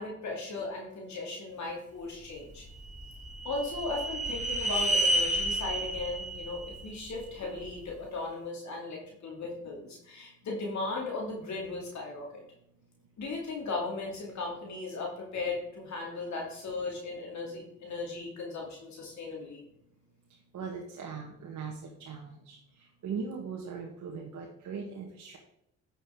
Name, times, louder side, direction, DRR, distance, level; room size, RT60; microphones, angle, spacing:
voice 1, 0.0-2.7 3.4-12.4 13.2-19.6, left 3 dB, 65° left, -2 dB, 2.4 m, -37 dB
sound 1, 2.5-7.7, right 1 dB, 25° right, 2.2 m, -31 dB
voice 2, 20.5-21.7 22.0-22.6 23.0-25.4, right 5 dB, 65° right, 0 dB, 1.5 m, -39 dB
9.8 x 6.1 x 3.7 m, 0.77 s
supercardioid pair, 55°, 31 cm